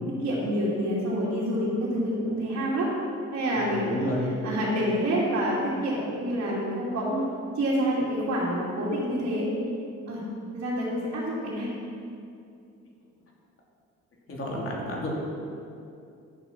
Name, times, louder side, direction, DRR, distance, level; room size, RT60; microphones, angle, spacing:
voice 1, 0.2-2.9 3.3-4.1 4.4-7.3 7.5-9.5 10.1-10.2 10.5-11.7, equal, 55° right, -8 dB, 2.8 m, -27 dB
voice 2, 3.7-4.3 14.3-15.1, left 1 dB, 45° left, -3 dB, 3.1 m, -31 dB
11.5 x 7.1 x 5.9 m, 2.5 s
cardioid pair, 90°, 30 cm